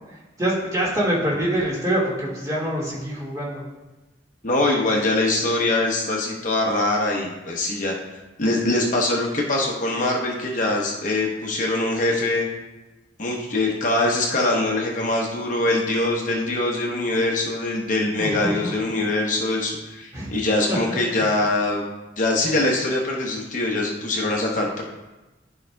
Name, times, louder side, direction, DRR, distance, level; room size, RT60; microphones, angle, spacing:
voice 1, 0.4-3.6 18.2-18.7 20.1-20.3 20.7-20.8 21.2-21.3, right 1 dB, 20° right, -5 dB, 1.8 m, -25 dB
voice 2, 4.4-7.9 8.4-12.5 13.2-21.8 22.2-24.8, left 2 dB, 45° left, -1 dB, 0.9 m, -23 dB
12.5 x 4.8 x 2.3 m, 1.1 s
head